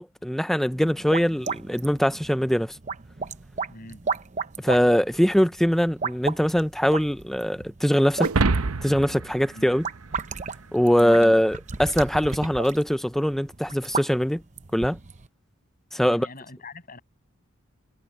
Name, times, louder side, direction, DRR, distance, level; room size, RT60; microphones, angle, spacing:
voice 1, 0.0-2.8 4.6-8.3 8.8-9.8 10.7-14.4 14.7-15.0 15.9-16.3, equal, ahead, 0.4 m, -22 dB
sound 1, 0.7-15.3, right 5 dB, 35° right, 0.8 m, -35 dB
voice 2, 3.7-4.1 9.5-9.7 11.0-11.5 16.0-17.0, left 1 dB, 40° left, 6.6 m, -42 dB
sound 2, 8.2-10.7, right 3 dB, 90° right, 0.9 m, -26 dB
head